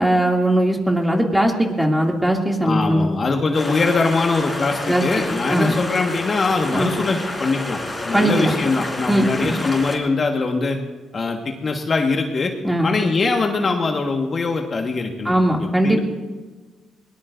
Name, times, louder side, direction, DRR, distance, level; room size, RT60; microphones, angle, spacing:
voice 1, 0.0-3.1 4.9-5.0 5.5-5.8 6.7-6.9 8.1-8.5 9.1-9.6 12.6-12.9 15.2-16.0, right 1 dB, 10° right, 0 dB, 2.6 m, -19 dB
voice 2, 2.6-7.8 8.0-10.8 11.1-12.5 12.8-15.3 15.6-16.0, left 3 dB, 40° left, 3 dB, 1.6 m, -22 dB
sound 1, 3.5-10.0, left 2 dB, 20° left, 4.0 m, -29 dB
21.5 x 19.5 x 2.7 m, 1.3 s
cardioid pair, 90°, 0 cm